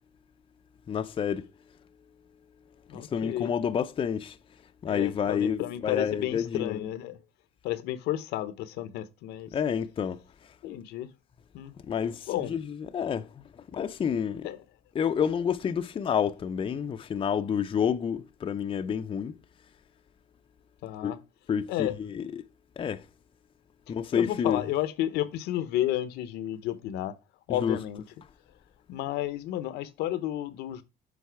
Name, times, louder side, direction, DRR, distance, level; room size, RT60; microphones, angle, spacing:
voice 1, 0.9-1.5 2.9-4.4 4.8-6.8 9.5-10.2 11.8-13.3 13.7-14.5 15.0-19.3 21.0-21.1 21.5-22.3 22.8-23.0 23.9-24.6 27.6-27.8, left 7 dB, 30° left, 0.5 m, -29 dB
voice 2, 2.9-3.5 4.8-7.2 7.6-9.5 10.6-11.1 11.5-11.7 12.3-12.6 14.4-14.6 20.8-21.2 21.7-22.0 24.1-27.2 27.5-28.0 28.9-30.8, left 13 dB, 85° left, 0.8 m, -32 dB
7.2 x 4.0 x 4.5 m
cardioid pair, 110°, 17 cm